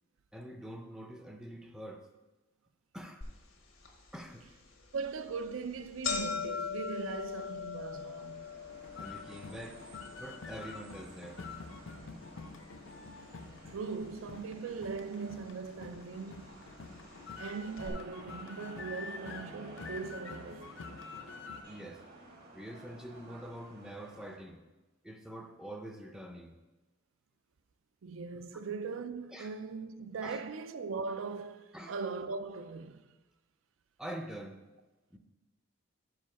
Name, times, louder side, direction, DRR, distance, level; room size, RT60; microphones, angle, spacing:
voice 1, 0.3-2.1 2.9-3.2 4.1-4.5 9.0-9.8 10.2-11.4 21.6-22.0 22.5-24.6 25.0-26.6 28.3-28.4 29.3-29.5 30.2-30.4 31.7-31.9 34.0-34.6 35.1-35.2, right 1 dB, 5° right, 0.4 m, -45 dB
sound 1, 3.2-3.3 3.8-3.9 4.8-5.0 5.3-5.4 5.7-13.9 14.1-14.9 15.7-15.8 16.7-16.8 17.1-17.2 17.8-17.9, left 6 dB, 90° left, 1.2 m, -41 dB
voice 2, 4.9-8.5 13.7-16.6 17.4-20.8 28.0-33.1, right 4 dB, 75° right, 0.4 m, -40 dB
sound 2, 7.9-24.4, right 2 dB, 50° right, 1.1 m, -54 dB
sound 3, 8.7-21.6, left 4 dB, 65° left, 0.6 m, -47 dB
5.0 x 4.9 x 5.8 m
head